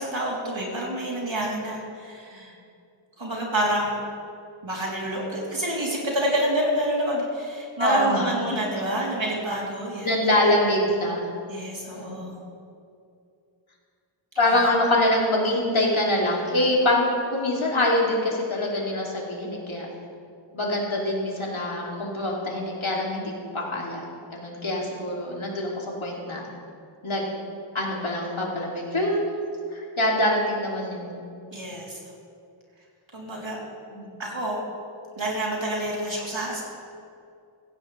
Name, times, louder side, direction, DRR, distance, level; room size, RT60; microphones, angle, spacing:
voice 1, 0.0-2.6 3.2-4.0 4.6-10.2 11.5-12.4 31.5-32.0 33.1-33.6 34.2-34.6 35.2-36.6, right 1 dB, 70° right, -4 dB, 3.5 m, -28 dB
voice 2, 7.8-8.6 10.0-11.2 11.9-12.2 14.4-19.9 20.5-26.5 27.0-27.3 27.7-29.2 29.7-31.1 33.9-34.1, left 1 dB, 75° left, -3 dB, 2.9 m, -25 dB
17.0 x 15.0 x 3.3 m, 2.4 s
wide cardioid pair, 60°, 48 cm